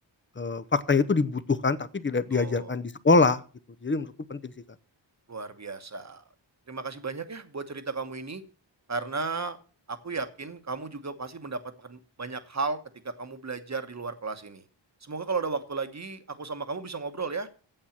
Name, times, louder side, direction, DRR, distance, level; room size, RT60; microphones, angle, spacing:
voice 1, 0.4-3.4 3.8-4.5, left 3 dB, 25° left, 0.7 m, -24 dB
voice 2, 2.3-2.8 5.3-6.2 6.7-8.4 8.9-9.6 9.9-12.8 13.0-14.6 15.0-17.5, right 4 dB, 35° right, 1.2 m, -34 dB
8.9 x 8.0 x 7.2 m
wide cardioid pair, 100°, 45 cm